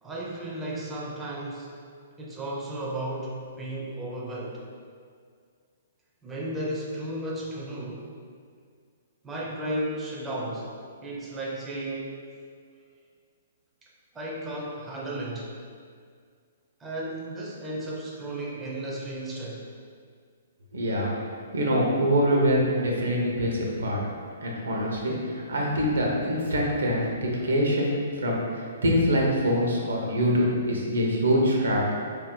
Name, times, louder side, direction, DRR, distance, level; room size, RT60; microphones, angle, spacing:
voice 1, 0.0-1.7 2.2-4.6 6.2-8.1 9.2-10.7 11.0-12.3 13.8-13.9 14.1-15.5 16.8-19.7, right 1 dB, 10° right, -4 dB, 0.4 m, -34 dB
voice 2, 20.7-21.2 21.5-24.0 24.4-27.9 28.2-28.4 28.8-32.2, equal, 90° right, -2 dB, 0.7 m, -24 dB
2.6 x 2.1 x 3.7 m, 2.1 s
hypercardioid pair, 150°, 0 cm